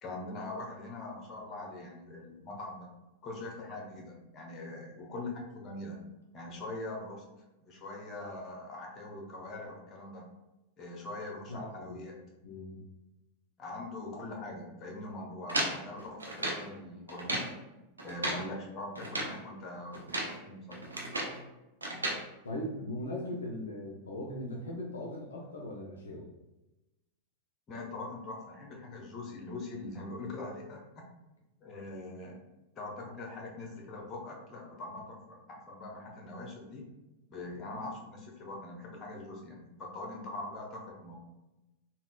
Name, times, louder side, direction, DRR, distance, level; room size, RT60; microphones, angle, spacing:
voice 1, 0.0-2.9 3.2-6.0 6.3-7.2 7.6-10.3 10.8-12.2 13.6-17.5 18.0-20.1 20.4-20.8 27.7-31.0 31.6-32.4 32.8-36.8 37.3-41.2, left 2 dB, 30° left, -1 dB, 0.7 m, -42 dB
voice 2, 11.5-12.0 12.4-12.8 22.4-26.3, left 1 dB, 70° left, -1 dB, 0.4 m, -39 dB
sound 1, 15.5-16.7 17.1-17.5 18.0-18.5 19.0-19.4 19.9-20.4 20.7-21.4 21.8-22.2, right 1 dB, 75° right, 0.5 m, -34 dB
3.6 x 2.0 x 2.3 m, 1.0 s
figure-of-eight pair, 90°, 0 cm